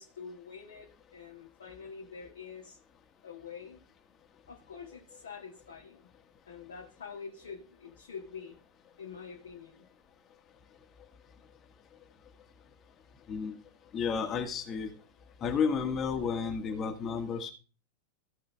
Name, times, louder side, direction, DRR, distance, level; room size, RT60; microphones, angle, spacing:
voice 1, 0.0-2.8 3.2-3.8 4.5-6.1 6.4-8.6 9.0-9.9, left 6 dB, 65° left, -1 dB, 1.4 m, -46 dB
voice 2, 13.9-14.9 15.4-17.5, left 6 dB, 30° left, 5 dB, 1.5 m, -31 dB
15.0 x 5.7 x 3.3 m, 0.36 s
figure-of-eight pair, 90°, 0 cm